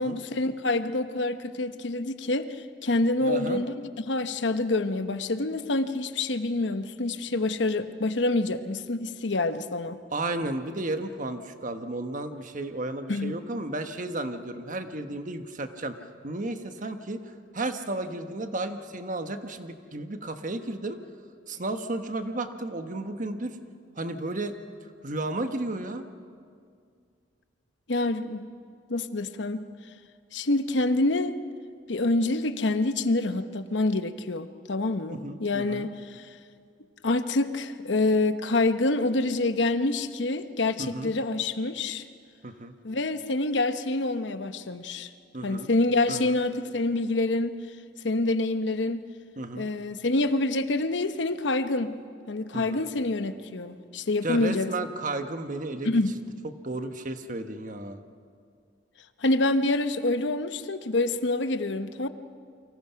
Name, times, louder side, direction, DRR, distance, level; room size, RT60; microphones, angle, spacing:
voice 1, 0.0-10.0 13.1-13.3 27.9-28.5 28.9-29.7 30.3-31.4 31.9-36.3 37.0-42.0 42.8-45.1 45.4-47.5 48.0-49.0 49.5-52.0 52.3-54.7 55.8-56.1 59.2-62.1, left 2 dB, 70° left, 10 dB, 1.0 m, -27 dB
voice 2, 3.2-3.6 10.1-16.0 16.2-21.0 21.5-23.6 24.0-24.5 25.0-26.1 35.1-35.9 40.8-41.1 42.4-42.7 45.3-45.7 46.1-46.4 49.4-49.7 52.5-52.9 54.2-56.0 56.4-58.0, right 2 dB, 45° right, 7 dB, 1.3 m, -33 dB
29.5 x 24.0 x 5.8 m, 2.3 s
head